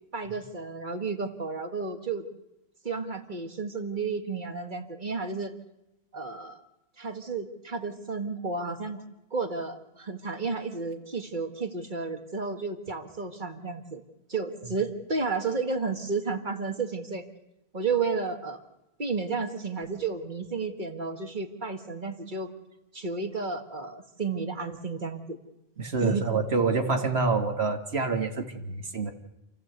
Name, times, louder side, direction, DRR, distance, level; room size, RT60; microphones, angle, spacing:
voice 1, 0.1-2.3 2.8-5.5 6.1-6.6 7.0-9.0 9.3-14.0 14.3-17.3 17.7-18.6 19.0-22.5 22.9-25.4 26.0-26.3, right 4 dB, 50° right, 6 dB, 1.9 m, -32 dB
voice 2, 25.8-29.1, right 4 dB, 85° right, 5 dB, 2.1 m, -27 dB
28.0 x 14.5 x 8.1 m, 0.94 s
omnidirectional pair, 1.0 m